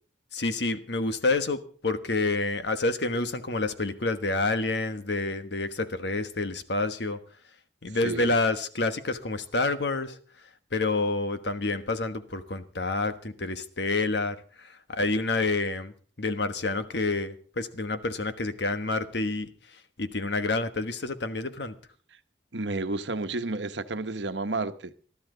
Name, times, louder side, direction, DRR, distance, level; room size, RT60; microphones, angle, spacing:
voice 1, 0.3-7.2 7.8-10.2 10.7-21.8, left 3 dB, 75° left, 9 dB, 1.3 m, -28 dB
voice 2, 22.5-24.9, right 2 dB, 85° right, 9 dB, 1.1 m, -31 dB
21.0 x 13.0 x 3.9 m, 0.43 s
head